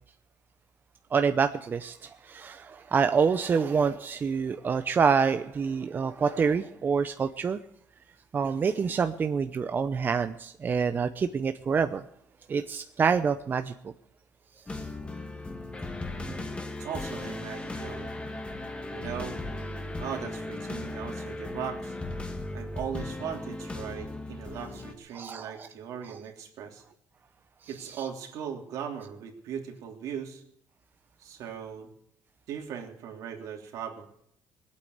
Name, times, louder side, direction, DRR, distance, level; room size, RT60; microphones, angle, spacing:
voice 1, 1.1-7.6 8.3-12.0 12.5-13.7 16.4-16.5 25.1-25.7, right 6 dB, 35° right, 0.7 m, -27 dB
sound 1, 14.7-24.9, left 2 dB, 20° left, 1.8 m, -37 dB
voice 2, 16.8-18.1 18.9-19.4 20.0-22.0 22.5-26.8 27.7-30.4 31.2-31.9 32.5-34.1, right 8 dB, 70° right, 3.1 m, -38 dB
19.5 x 8.7 x 8.0 m
cardioid pair, 105°, 6 cm